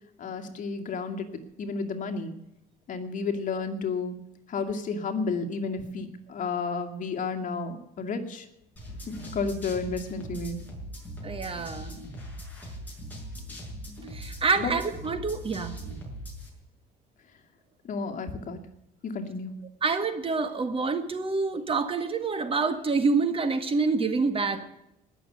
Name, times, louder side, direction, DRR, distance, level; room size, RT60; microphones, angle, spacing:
voice 1, 0.2-2.3 2.9-4.2 4.5-8.5 9.1-10.6 14.6-14.7 17.8-18.6 19.0-19.6, left 4 dB, 50° left, 6 dB, 2.3 m, -32 dB
sound 1, 8.8-16.5, equal, 10° left, 6.5 m, -40 dB
voice 2, 11.2-12.0 14.1-15.8 19.8-24.7, right 4 dB, 35° right, 10 dB, 1.8 m, -27 dB
19.5 x 7.1 x 9.7 m, 0.84 s
cardioid pair, 110°, 17 cm